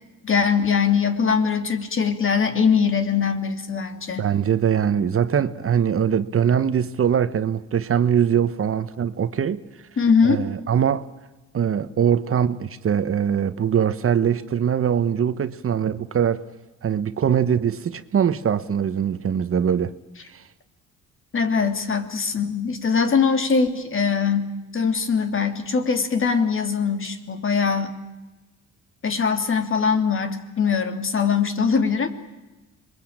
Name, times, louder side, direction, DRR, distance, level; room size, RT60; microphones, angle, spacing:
voice 1, 0.2-4.3 10.0-10.5 21.3-28.0 29.0-32.1, left 6 dB, 45° left, 2.9 m, -22 dB
voice 2, 4.2-9.6 10.2-11.1 11.5-16.4 16.8-19.9 20.3-20.4, right 8 dB, 45° right, 1.2 m, -22 dB
26.5 x 22.0 x 8.8 m
cardioid pair, 90°, 30 cm